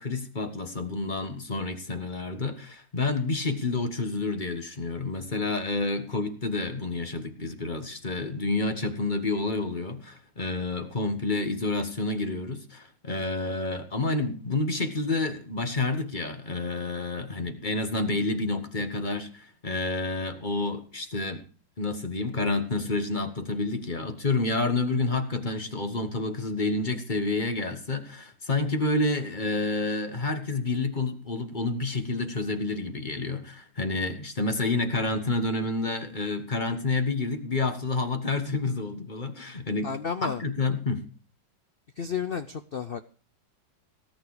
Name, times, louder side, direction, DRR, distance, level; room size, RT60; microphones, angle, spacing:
voice 1, 0.0-21.4 21.8-39.9 40.2-41.0, left 3 dB, 25° left, 8 dB, 1.5 m, -29 dB
voice 2, 39.8-40.4 42.0-43.0, left 6 dB, 90° left, 11 dB, 0.5 m, -31 dB
18.0 x 9.2 x 4.9 m, 0.38 s
omnidirectional pair, 2.0 m